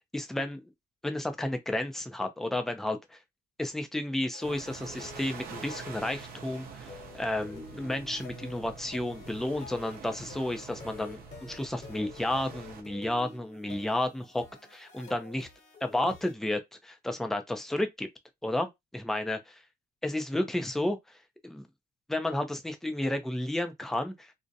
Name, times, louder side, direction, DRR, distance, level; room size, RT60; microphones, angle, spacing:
voice 1, 0.1-0.6 1.0-3.2 3.6-14.4 14.7-15.5 15.8-18.1 18.4-19.6 20.0-21.0 21.4-21.7 22.1-24.3, left 1 dB, ahead, 0.4 m, -32 dB
sound 1, 4.3-16.3, left 4 dB, 40° left, 1.0 m, -49 dB
sound 2, 4.4-12.8, right 6 dB, 60° right, 0.7 m, -46 dB
2.5 x 2.1 x 2.6 m
cardioid pair, 110°, 17 cm